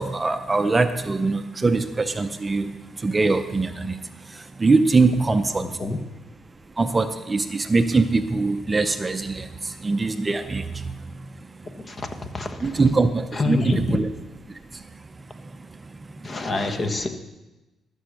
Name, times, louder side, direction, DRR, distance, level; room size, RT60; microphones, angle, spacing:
voice 1, 0.0-5.8 6.8-11.8 12.6-14.1 14.5-16.4, right 3 dB, 25° right, 9 dB, 0.6 m, -23 dB
voice 2, 5.6-6.0 11.9-12.1 12.3-12.8 13.3-14.0 16.2-17.1, left 3 dB, 35° left, 7 dB, 1.2 m, -26 dB
13.0 x 6.3 x 6.3 m, 1.1 s
cardioid pair, 90°, 0 cm